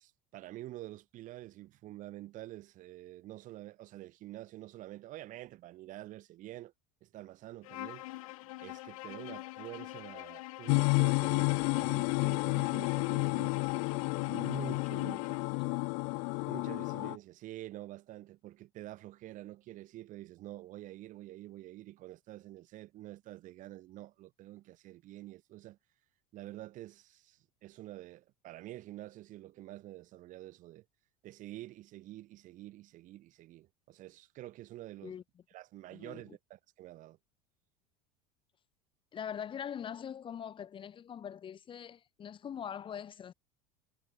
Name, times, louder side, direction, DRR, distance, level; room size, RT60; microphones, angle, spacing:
voice 1, 0.0-6.7 7.0-8.1 8.4-15.4 16.5-25.8 26.3-30.8 31.2-35.2 35.5-37.2, right 15 dB, 50° right, 2.3 m, -48 dB
Bowed string instrument, 7.6-15.5, left 20 dB, 90° left, 1.1 m, -45 dB
sound 1, 10.7-17.2, left 40 dB or more, 65° left, 0.4 m, -31 dB
voice 2, 35.9-36.4 39.1-43.3, left 8 dB, 30° left, 1.4 m, -42 dB
supercardioid pair, 125°, 17 cm